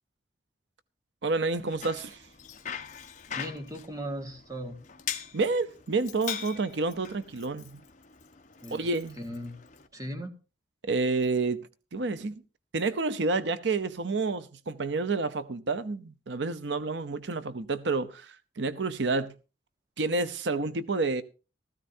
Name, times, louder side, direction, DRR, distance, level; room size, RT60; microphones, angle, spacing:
voice 1, 1.2-2.2 5.3-7.8 8.7-9.2 10.8-11.6 11.9-12.4 12.7-19.3 20.0-21.2, right 3 dB, 90° right, 0.7 m, -29 dB
Bicycle, 1.5-9.9, left 8 dB, 45° left, 1.1 m, -42 dB
voice 2, 3.3-4.7 8.6-8.9 9.2-9.6 9.9-10.3, equal, 20° right, 1.6 m, -37 dB
16.0 x 14.0 x 2.7 m
head